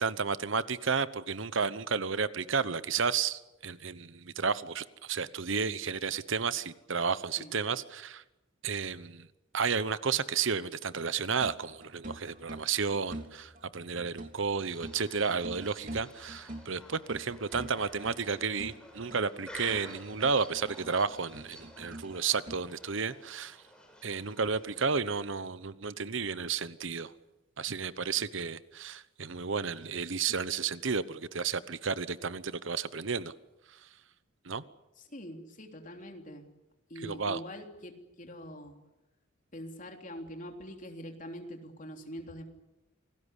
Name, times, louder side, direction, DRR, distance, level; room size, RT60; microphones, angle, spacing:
voice 1, 0.0-8.2 8.6-9.3 9.5-23.6 24.0-27.1 27.6-33.3 33.7-33.8 34.4-34.6 37.0-37.4, right 5 dB, 70° right, 15 dB, 1.0 m, -32 dB
sound 1, 10.9-22.6, right 1 dB, 40° right, 3.2 m, -46 dB
sound 2, 14.6-25.0, left 1 dB, 5° left, 4.7 m, -51 dB
voice 2, 35.0-36.4 36.9-38.8 39.5-42.4, equal, 40° left, 3 dB, 3.4 m, -44 dB
27.5 x 19.0 x 8.3 m, 0.98 s
head